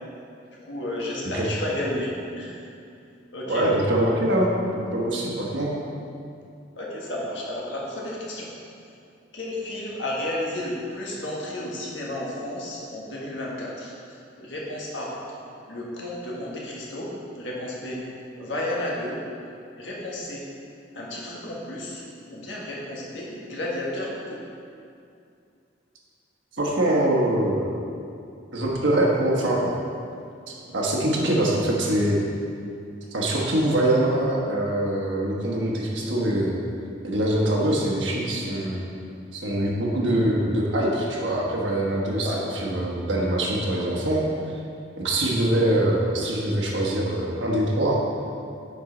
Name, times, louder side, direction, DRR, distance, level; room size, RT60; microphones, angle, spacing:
voice 1, 0.6-2.5 3.3-3.7 6.7-8.5 9.3-15.1 15.6-18.0 18.4-19.2 19.8-20.4 20.9-22.0 22.3-24.4 42.1-42.4, left 1 dB, 75° left, -4 dB, 1.4 m, -32 dB
voice 2, 3.5-5.7 26.6-27.8 28.5-29.8 30.7-32.2 33.1-36.6 37.0-38.8 39.3-44.2 45.0-48.0, right 1 dB, 75° right, -3 dB, 1.2 m, -23 dB
7.5 x 5.3 x 3.9 m, 2.5 s
head